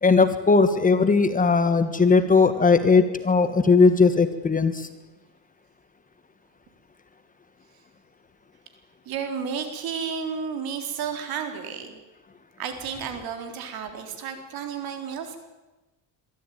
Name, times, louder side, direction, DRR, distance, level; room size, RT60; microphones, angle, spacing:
voice 1, 0.0-4.9, left 4 dB, 20° left, 10 dB, 1.4 m, -18 dB
voice 2, 9.1-12.0 12.6-15.4, right 6 dB, 60° right, 6 dB, 4.0 m, -32 dB
23.0 x 14.0 x 9.3 m, 1.2 s
cardioid pair, 125°, 41 cm